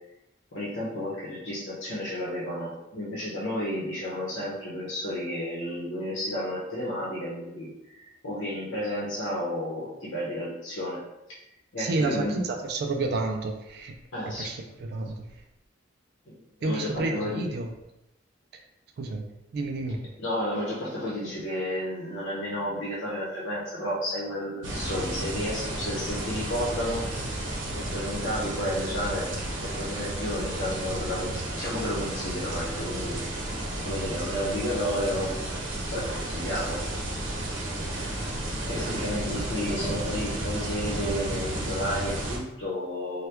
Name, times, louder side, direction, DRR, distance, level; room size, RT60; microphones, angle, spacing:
voice 1, 0.5-11.0 11.7-12.4 14.1-14.5 16.3-16.4 16.6-17.4 20.2-27.1 27.7-29.3 29.6-33.2 33.8-35.3 35.9-36.8 38.6-43.3, left 1 dB, 80° left, -7 dB, 0.8 m, -32 dB
voice 2, 11.8-13.9 14.3-15.2 16.6-17.7 18.5-18.6 19.0-19.2 19.5-20.0 39.0-39.2, right 2 dB, 55° right, 4 dB, 0.3 m, -30 dB
sound 1, 24.6-42.4, right 1 dB, 85° right, 0.7 m, -32 dB
2.9 x 2.2 x 3.3 m, 0.90 s
head